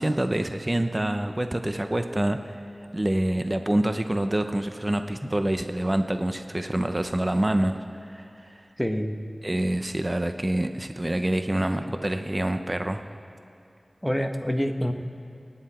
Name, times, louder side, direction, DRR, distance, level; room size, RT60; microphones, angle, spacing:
voice 1, 0.0-2.5 2.9-8.2 9.4-13.0, right 1 dB, 30° right, 7 dB, 0.8 m, -26 dB
voice 2, 8.8-9.2 11.8-11.9 14.0-14.9, equal, 5° left, 4 dB, 1.5 m, -26 dB
26.5 x 9.9 x 4.4 m, 2.6 s
wide cardioid pair, 40°, 0 cm